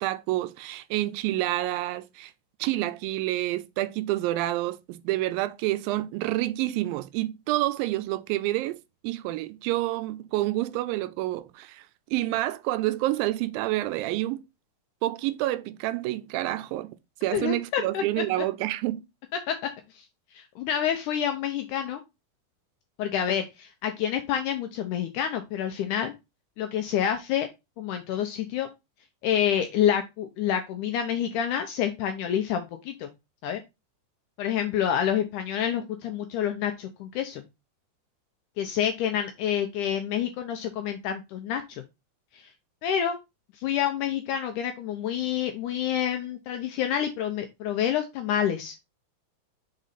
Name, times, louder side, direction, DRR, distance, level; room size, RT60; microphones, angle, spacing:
voice 1, 0.0-2.3 2.6-11.8 12.1-14.4 15.0-17.0 17.2-19.0, right 16 dB, 85° right, 2.3 m, -28 dB
voice 2, 17.3-18.0 19.3-19.6 20.0-20.1 20.3-22.0 23.0-26.1 26.6-27.5 27.8-28.7 29.2-33.1 33.4-33.6 34.4-37.4 38.6-41.8 42.3-42.5 42.8-43.2 43.6-48.7, left 9 dB, 80° left, 1.9 m, -28 dB
6.3 x 3.9 x 4.1 m
omnidirectional pair, 4.1 m